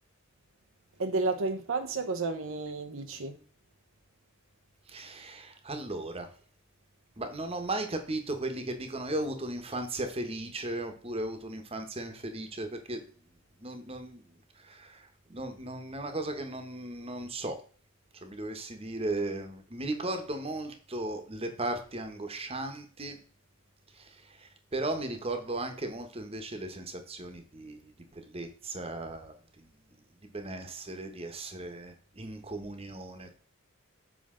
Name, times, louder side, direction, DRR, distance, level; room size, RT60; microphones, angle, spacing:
voice 1, 1.0-3.4, right 3 dB, 65° right, 0.7 m, -31 dB
voice 2, 4.9-6.3 7.2-13.0 13.6-17.6 18.2-23.2 23.9-29.7 30.3-33.4, right 2 dB, 25° right, 1.1 m, -36 dB
7.5 x 5.4 x 3.7 m
head